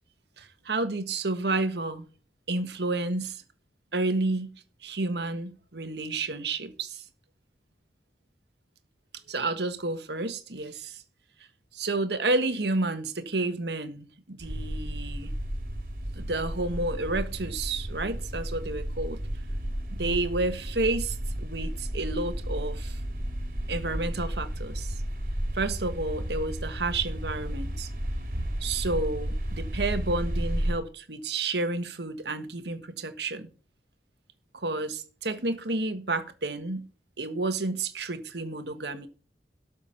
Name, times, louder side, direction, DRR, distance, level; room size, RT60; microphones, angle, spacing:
voice 1, 0.4-2.1 2.5-3.4 3.9-4.5 4.8-7.0 9.3-11.0 11.7-15.3 16.1-19.2 19.9-23.0 23.7-25.0 25.5-27.9 28.6-33.5 34.5-36.9 37.2-39.1, right 2 dB, 75° right, 1.5 m, -30 dB
sound 1, 14.4-30.7, equal, 50° right, 3.0 m, -33 dB
13.0 x 6.4 x 5.8 m
head